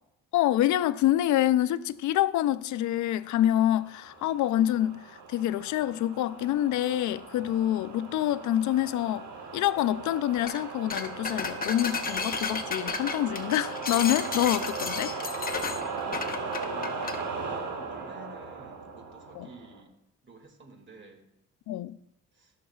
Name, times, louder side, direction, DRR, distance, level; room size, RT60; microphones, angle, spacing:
voice 1, 0.3-9.3 9.5-15.2 19.4-19.5 21.7-22.0, left 13 dB, 75° left, 0.5 m, -26 dB
sound 1, 3.3-19.8, right 4 dB, 65° right, 1.7 m, -38 dB
sound 2, 10.4-10.6 10.9-17.2, left 5 dB, 30° left, 1.0 m, -33 dB
voice 2, 16.4-19.9 20.2-21.3 22.3-22.5, right 3 dB, 40° right, 2.2 m, -50 dB
18.0 x 6.5 x 2.4 m
cardioid pair, 90°, 30 cm